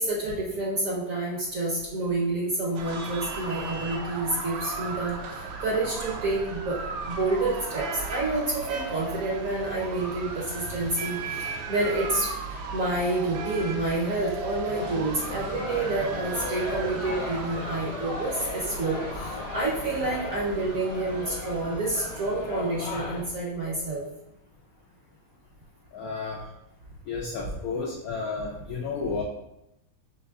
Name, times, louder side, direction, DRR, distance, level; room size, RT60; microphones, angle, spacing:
voice 1, 0.0-5.2 5.6-6.8 7.1-12.3 12.7-19.0 19.5-24.0, right 2 dB, 60° right, -3 dB, 0.9 m, -28 dB
sound 1, 2.7-22.3, right 4 dB, 80° right, 1.3 m, -37 dB
sound 2, 14.7-23.2, left 3 dB, 45° left, 1.1 m, -36 dB
voice 2, 25.9-26.5 27.1-29.2, left 4 dB, 80° left, -1 dB, 0.7 m, -32 dB
5.8 x 3.3 x 2.3 m, 0.88 s
omnidirectional pair, 2.1 m